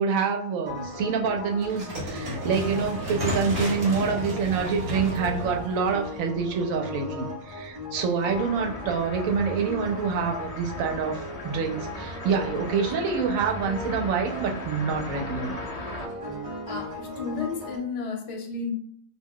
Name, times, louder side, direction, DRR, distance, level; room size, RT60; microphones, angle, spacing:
voice 1, 0.0-15.6, right 5 dB, 85° right, 1.0 m, -27 dB
sound 1, 0.6-17.8, left 1 dB, 35° right, 0.6 m, -38 dB
sound 2, 1.6-6.7, equal, 60° right, 1.2 m, -33 dB
sound 3, 8.3-16.1, left 2 dB, 80° left, 0.3 m, -38 dB
voice 2, 16.7-18.7, left 4 dB, 55° left, 0.8 m, -32 dB
2.4 x 2.2 x 3.6 m
omnidirectional pair, 1.4 m